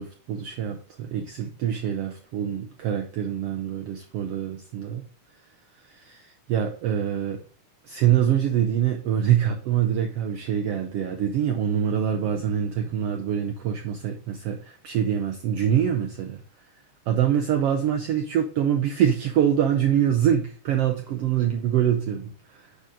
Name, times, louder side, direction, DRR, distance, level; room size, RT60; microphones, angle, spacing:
voice 1, 0.0-5.0 6.0-7.4 7.9-16.4 17.1-22.6, right 9 dB, 75° right, 3 dB, 1.4 m, -25 dB
9.2 x 3.9 x 4.9 m, 0.42 s
omnidirectional pair, 3.5 m